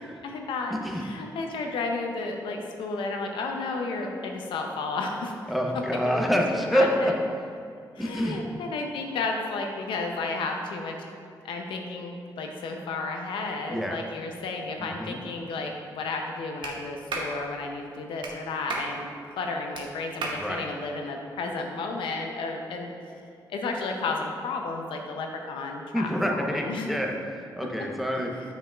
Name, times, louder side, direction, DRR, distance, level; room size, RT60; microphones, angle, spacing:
voice 1, 0.0-5.5 6.1-7.1 8.0-11.0 11.4-19.1 19.4-22.9 23.5-26.9 28.1-28.2, left 3 dB, 85° left, 2 dB, 0.6 m, -32 dB
voice 2, 0.7-1.0 5.5-7.1 8.0-8.4 13.7-14.0 14.8-15.2 20.3-20.6 25.9-28.3, equal, ahead, 0 dB, 0.9 m, -27 dB
Clapping, 16.6-16.7 17.1-17.3 18.2-18.3 18.7-18.9 19.7-19.8 20.2-20.4, right 3 dB, 70° right, 0.9 m, -32 dB
7.1 x 5.6 x 2.4 m, 2.5 s
supercardioid pair, 50°, 8 cm